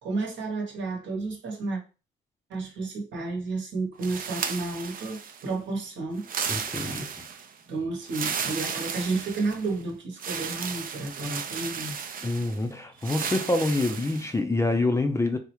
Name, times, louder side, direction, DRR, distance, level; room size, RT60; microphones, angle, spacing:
voice 1, 0.0-1.8 2.5-6.3 6.8-12.0, right 3 dB, 65° right, 1.0 m, -32 dB
sound 1, 4.0-5.5 6.2-7.5 8.1-9.7 10.2-12.6 13.0-14.3, right 6 dB, 45° right, 0.5 m, -34 dB
voice 2, 6.5-7.3 12.2-15.4, left 2 dB, 15° left, 0.4 m, -26 dB
3.5 x 2.1 x 2.9 m
cardioid pair, 90°, 20 cm